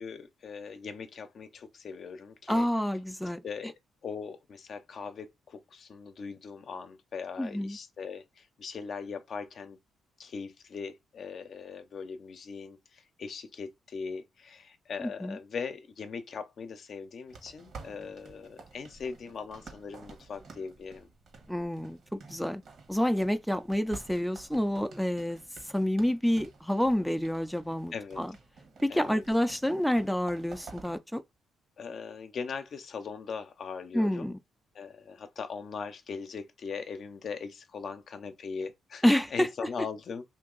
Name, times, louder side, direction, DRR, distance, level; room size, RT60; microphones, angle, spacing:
voice 1, 0.0-2.7 3.4-3.7 4.0-9.8 10.2-21.1 27.9-28.2 28.9-29.2 31.8-34.4 34.7-39.0 39.3-40.2, left 5 dB, 55° left, 0.6 m, -40 dB
voice 2, 2.5-3.4 7.4-7.8 15.0-15.4 21.5-22.6 22.9-25.4 25.6-28.3 28.8-31.2 33.9-34.3 39.0-39.7, equal, ahead, 0.4 m, -28 dB
sound 1, 17.3-31.0, right 4 dB, 60° right, 1.2 m, -51 dB
2.9 x 2.6 x 3.8 m
cardioid pair, 90°, 0 cm